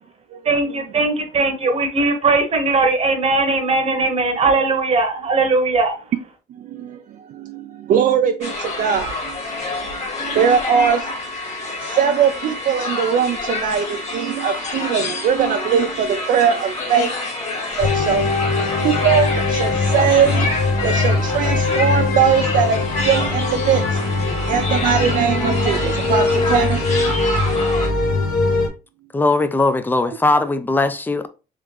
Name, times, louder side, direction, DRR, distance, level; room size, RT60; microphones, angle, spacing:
voice 1, 0.4-6.0, right 3 dB, 35° right, 1.0 m, -19 dB
voice 2, 6.5-11.2 11.8-17.2 17.8-18.3 18.8-20.5 20.8-24.0 24.5-27.2 28.0-28.2 30.1-30.2, right 7 dB, 55° right, 0.4 m, -21 dB
sound 1, 8.4-27.9, left 2 dB, 40° left, 1.6 m, -27 dB
sound 2, 17.8-28.7, left 3 dB, 60° left, 0.8 m, -21 dB
voice 3, 29.1-31.3, left 2 dB, 10° left, 0.4 m, -19 dB
3.7 x 3.2 x 3.1 m
cardioid pair, 110°, 17 cm